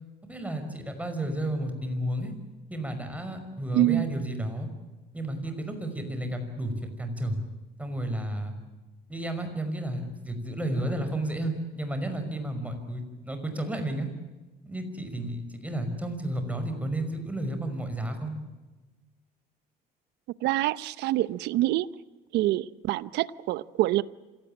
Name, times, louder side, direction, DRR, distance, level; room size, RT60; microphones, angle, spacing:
voice 1, 0.3-2.3 2.7-4.7 5.1-7.4 7.8-8.5 9.1-14.1 14.7-18.3, right 1 dB, 10° right, 7 dB, 5.6 m, -32 dB
voice 2, 3.7-4.1 20.4-21.9 22.3-24.0, right 15 dB, 85° right, 18 dB, 0.8 m, -26 dB
27.0 x 17.5 x 8.9 m, 1.2 s
cardioid pair, 110°, 17 cm